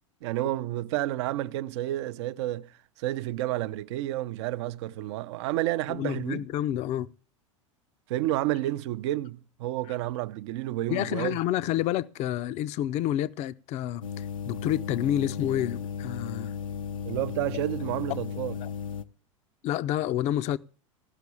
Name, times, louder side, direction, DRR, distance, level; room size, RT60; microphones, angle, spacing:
voice 1, 0.2-2.7 3.0-6.4 8.1-11.4 17.1-18.6, right 15 dB, 55° right, 0.6 m, -30 dB
voice 2, 5.9-7.1 10.9-16.5 18.6-18.7 19.6-20.6, left 12 dB, 40° left, 0.6 m, -29 dB
sound 1, 14.0-19.0, left 7 dB, 80° left, 0.8 m, -35 dB
15.5 x 6.0 x 8.5 m
figure-of-eight pair, 85°, 17 cm